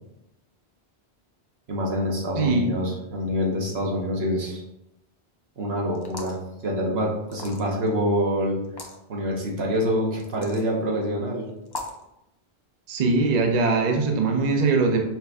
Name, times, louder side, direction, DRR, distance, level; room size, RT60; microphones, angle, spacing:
voice 1, 1.7-4.6 5.6-6.4 6.6-8.5 9.1-11.4, equal, 75° right, -1 dB, 1.2 m, -26 dB
voice 2, 2.4-2.8 12.9-15.0, right 3 dB, 50° right, 3 dB, 0.6 m, -21 dB
sound 1, 5.9-6.4 7.3-7.9 8.6-9.0 10.2-10.7 11.7-12.0, left 2 dB, 30° left, 0.5 m, -37 dB
5.6 x 2.5 x 3.4 m, 0.87 s
omnidirectional pair, 1.1 m